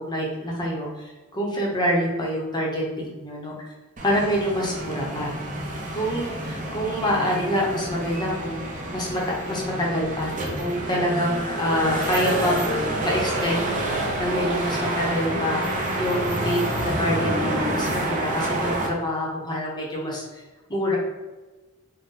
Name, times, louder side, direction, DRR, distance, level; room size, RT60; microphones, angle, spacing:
voice 1, 0.1-3.7 4.0-5.3 5.9-8.6 8.9-12.6 13.0-13.7 14.2-20.4 20.7-21.0, equal, 20° left, -3 dB, 0.8 m, -26 dB
sound 1, 4.0-18.9, right 1 dB, 35° right, 0.6 m, -28 dB
4.0 x 2.1 x 3.7 m, 1.2 s
head